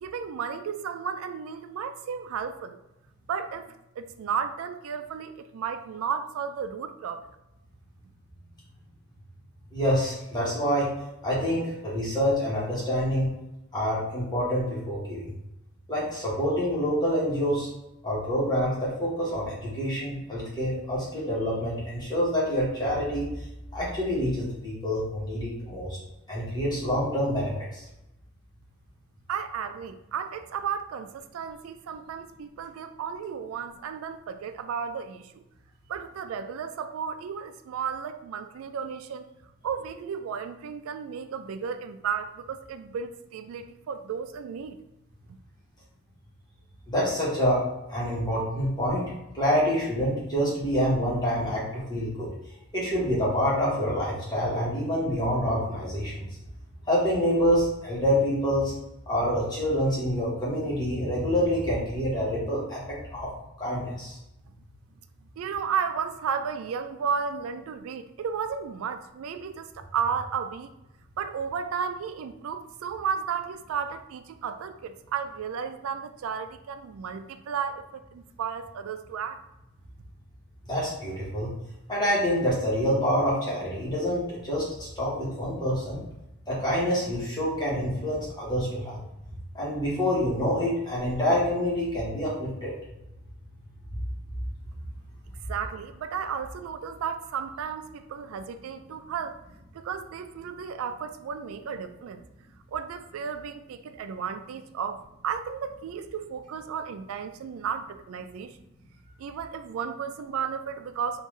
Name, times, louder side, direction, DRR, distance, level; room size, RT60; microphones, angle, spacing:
voice 1, 0.0-2.8 3.3-7.3 29.3-35.4 35.9-39.2 39.6-44.8 45.3-45.4 65.4-70.7 71.2-79.4 95.5-99.4 99.7-102.2 102.7-108.6 109.2-111.2, right 7 dB, 85° right, 9 dB, 0.3 m, -33 dB
voice 2, 9.7-10.9 11.2-13.3 13.7-15.3 15.9-17.7 18.0-23.4 23.7-26.0 26.3-27.9 46.9-47.6 47.9-52.3 52.7-56.3 56.8-58.7 59.1-63.3 63.6-64.2 80.6-81.5 81.9-86.0 86.5-89.0 89.5-92.7, equal, 20° left, -6 dB, 1.2 m, -27 dB
3.7 x 2.5 x 3.1 m, 0.91 s
head